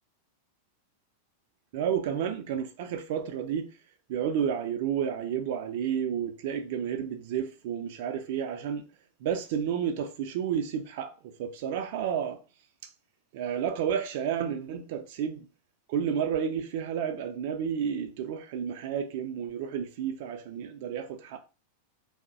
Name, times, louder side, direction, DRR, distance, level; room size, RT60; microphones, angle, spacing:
voice 1, 1.7-3.7 4.1-8.9 9.2-12.4 13.3-15.5 15.9-21.4, right 8 dB, 50° right, 0.4 m, -31 dB
2.5 x 2.0 x 2.5 m
figure-of-eight pair, 90°, 0 cm